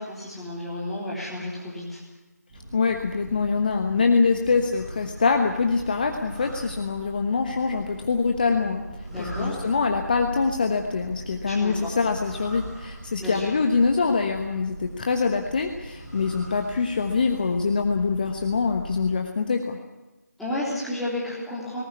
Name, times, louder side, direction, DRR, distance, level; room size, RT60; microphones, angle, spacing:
voice 1, 0.0-2.0 9.1-9.6 11.5-11.9 13.2-13.5 20.4-21.8, left 1 dB, ahead, -9 dB, 3.5 m, -32 dB
sound 1, 2.5-19.1, right 1 dB, 25° right, 6.4 m, -40 dB
voice 2, 2.7-8.8 9.2-19.8, left 4 dB, 30° left, 5 dB, 1.2 m, -24 dB
19.0 x 17.5 x 9.7 m, 1.1 s
figure-of-eight pair, 160°, 9 cm